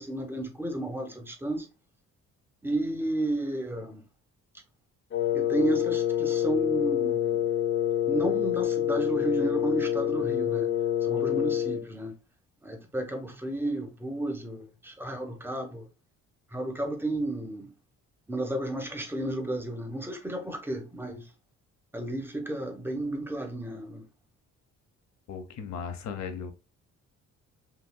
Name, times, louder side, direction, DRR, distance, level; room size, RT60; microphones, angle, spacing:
voice 1, 0.0-1.7 2.6-4.0 5.3-7.5 8.1-10.7 11.0-12.1 12.6-15.9 16.5-17.7 18.3-21.3 21.9-24.1, right 1 dB, 5° right, 1.1 m, -32 dB
Wind instrument woodwind instrument, 5.1-11.8, left 11 dB, 40° left, 0.6 m, -27 dB
voice 2, 25.3-26.5, left 6 dB, 65° left, 1.0 m, -36 dB
5.7 x 2.3 x 2.2 m
cardioid pair, 90°, 30 cm